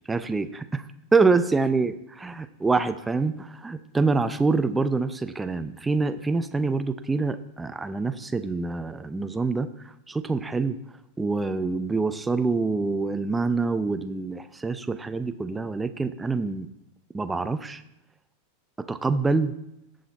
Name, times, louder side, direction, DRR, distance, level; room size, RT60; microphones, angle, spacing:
voice 1, 0.1-0.8 1.1-9.7 10.1-10.8 11.2-16.7 17.1-17.8 18.8-19.5, right 3 dB, 10° right, 10 dB, 0.7 m, -26 dB
18.5 x 6.5 x 4.1 m, 0.85 s
figure-of-eight pair, 90°, 0 cm